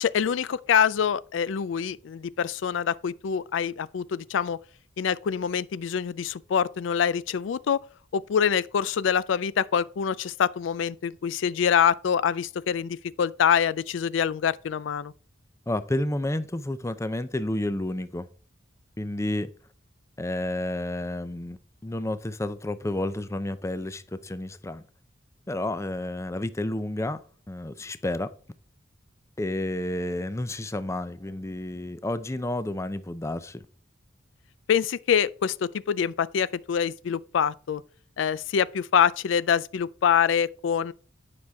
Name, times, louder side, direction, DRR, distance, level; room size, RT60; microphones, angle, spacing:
voice 1, 0.0-4.6 5.0-7.8 8.1-15.1 34.7-37.8 38.2-40.9, left 7 dB, 70° left, 0.4 m, -25 dB
voice 2, 15.7-18.3 19.0-19.5 20.2-24.8 25.5-27.2 27.5-28.3 29.4-33.6, left 1 dB, 15° left, 0.5 m, -30 dB
9.9 x 6.2 x 3.5 m
head